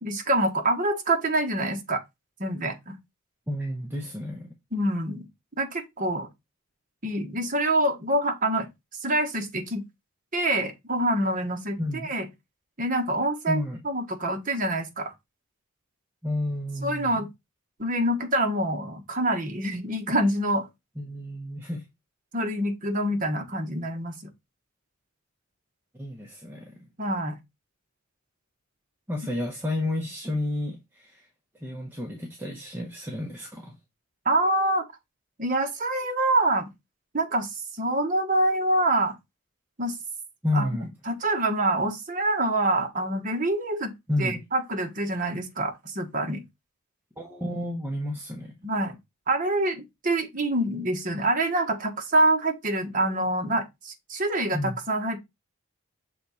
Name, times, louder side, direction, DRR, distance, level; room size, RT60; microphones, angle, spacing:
voice 1, 0.0-2.0 2.4-2.9 4.7-5.2 5.6-6.3 7.0-8.7 9.0-9.8 10.3-12.3 12.8-15.1 16.8-17.3 17.8-20.7 22.3-24.1 27.0-27.4 34.2-34.8 35.4-36.7 37.1-39.1 39.8-40.0 40.5-40.7 41.1-43.9 44.2-46.4 48.6-49.0 49.3-55.2, right 1 dB, 40° right, 1.1 m, -26 dB
voice 2, 3.5-4.5 11.8-12.1 13.5-13.8 16.2-17.3 21.0-21.8 25.9-26.8 29.1-31.3 31.6-33.7 40.4-40.9 44.1-44.4 47.2-48.5 54.5-54.8, left 1 dB, 10° right, 0.9 m, -31 dB
6.5 x 3.6 x 4.2 m
head